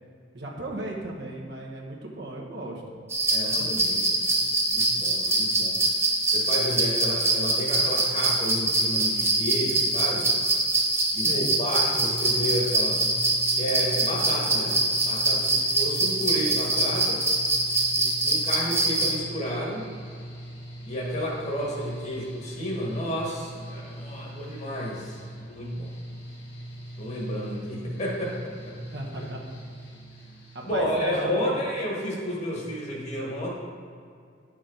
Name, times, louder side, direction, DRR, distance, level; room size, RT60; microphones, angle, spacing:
voice 1, 0.3-2.8 11.2-11.5 17.9-18.4 28.9-29.4 30.5-31.1 31.4-31.6, right 1 dB, 65° right, -2 dB, 1.3 m, -36 dB
sound 1, 3.1-19.2, right 2 dB, 15° right, 0.9 m, -24 dB
voice 2, 3.3-5.8 6.3-10.3 11.1-13.0 13.5-14.8 15.0-17.2 18.2-19.8 20.9-25.9 27.0-28.8 29.2-29.3 30.6-33.5, equal, 35° left, -2 dB, 1.7 m, -31 dB
Mechanical fan, 12.3-30.7, right 1 dB, 65° left, 1.9 m, -42 dB
10.0 x 6.4 x 3.9 m, 2.2 s
head